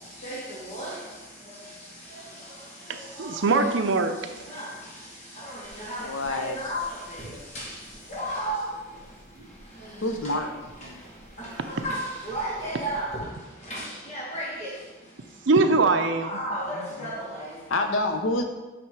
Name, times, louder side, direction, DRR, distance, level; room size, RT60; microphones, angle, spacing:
voice 1, 0.2-1.0 2.2-2.3 3.2-3.6 4.5-4.7 5.4-7.8 8.1-8.7 11.4-13.2 13.6-14.7 16.2-17.9, right 1 dB, 35° left, -5 dB, 2.0 m, -34 dB
voice 2, 2.9-4.2 15.5-16.3, right 3 dB, 65° right, 6 dB, 0.6 m, -22 dB
sound 1, 5.6-13.2, right 1 dB, 20° right, 1.9 m, -51 dB
voice 3, 6.0-6.6 10.0-10.5 15.9-16.0 17.0-17.1 17.7-18.4, left 2 dB, 75° left, 5 dB, 0.8 m, -27 dB
8.6 x 3.5 x 4.8 m, 1.2 s
head